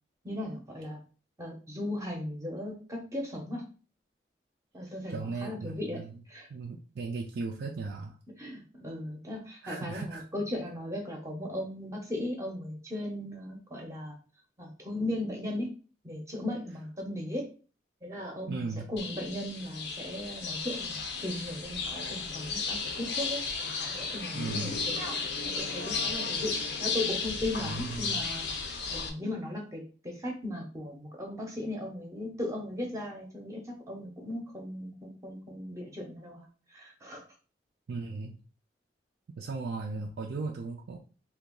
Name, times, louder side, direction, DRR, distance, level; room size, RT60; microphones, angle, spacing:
voice 1, 0.2-1.0 1.4-3.6 4.7-6.0 6.3-6.5 8.4-14.2 14.6-15.7 16.0-17.4 18.0-25.3 25.6-26.5 26.8-37.2, left 1 dB, 15° right, 0 dB, 0.7 m, -37 dB
voice 2, 5.1-6.1 6.5-8.2 9.6-10.2 18.5-18.9 24.3-24.8 27.6-28.2 37.9-38.4 39.4-41.0, right 3 dB, 70° right, 0 dB, 0.4 m, -37 dB
sound 1, 19.0-29.1, left 4 dB, 70° left, 0.6 m, -34 dB
2.8 x 2.3 x 3.7 m, 0.37 s
head